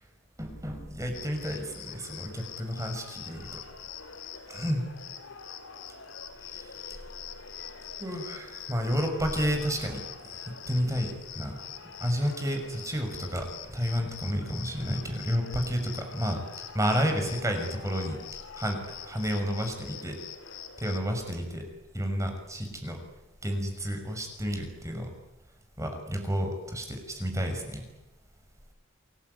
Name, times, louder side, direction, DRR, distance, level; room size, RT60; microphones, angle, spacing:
voice 1, 0.4-3.6 4.5-4.8 6.5-7.0 8.0-10.0 10.3-11.6 12.0-16.4 16.7-18.2 18.6-20.2 20.8-21.6 21.9-23.0 23.4-25.1 25.8-27.8, equal, 15° right, 4 dB, 5.9 m, -31 dB
Cricket, 1.1-21.0, left 7 dB, 80° left, 2.9 m, -44 dB
28.5 x 20.5 x 9.6 m, 0.96 s
head